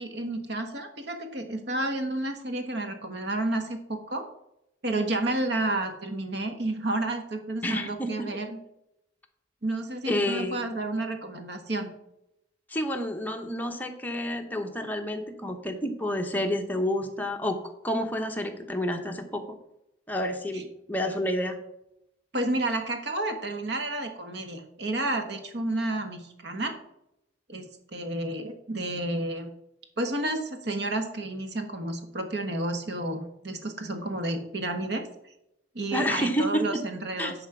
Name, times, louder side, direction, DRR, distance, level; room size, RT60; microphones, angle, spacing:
voice 1, 0.0-4.3 4.8-8.6 9.6-11.9 20.5-20.6 22.3-26.7 27.5-29.5 30.0-35.1 35.7-37.3, right 2 dB, 65° right, 5 dB, 1.3 m, -31 dB
voice 2, 7.6-8.1 10.1-10.7 12.7-19.4 20.1-21.6 35.9-36.8 37.2-37.3, left 1 dB, 10° left, 3 dB, 0.9 m, -29 dB
10.5 x 4.2 x 6.0 m, 0.83 s
head